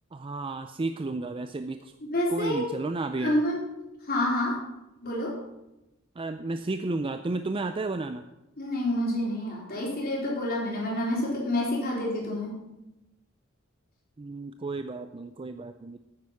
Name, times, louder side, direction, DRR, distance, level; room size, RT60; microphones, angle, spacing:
voice 1, 0.1-1.9 2.3-3.4 6.2-8.2 14.2-16.0, right 2 dB, 25° right, 8 dB, 0.4 m, -32 dB
voice 2, 2.0-2.7 3.2-3.7 4.0-4.6 5.0-5.3 8.6-12.6, left 1 dB, 50° left, -3 dB, 4.2 m, -28 dB
9.5 x 9.5 x 5.8 m, 0.95 s
head